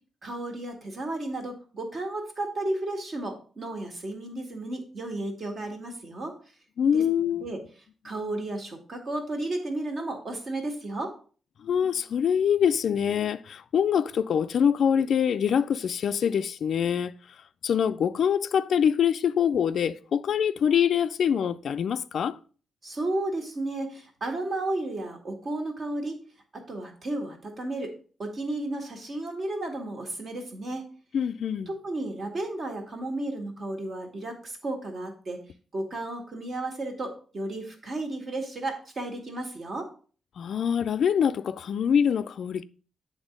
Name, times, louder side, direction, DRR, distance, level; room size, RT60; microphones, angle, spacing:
voice 1, 0.2-6.4 6.9-7.6 8.0-11.1 22.8-26.2 26.5-27.9 28.2-30.8 31.7-35.5 35.7-39.9, right 2 dB, 45° right, 1.8 m, -33 dB
voice 2, 6.8-7.4 11.6-17.1 17.6-22.4 31.1-31.7 40.4-42.6, left 8 dB, 65° left, 0.3 m, -24 dB
8.2 x 3.6 x 5.1 m
cardioid pair, 120°, 0 cm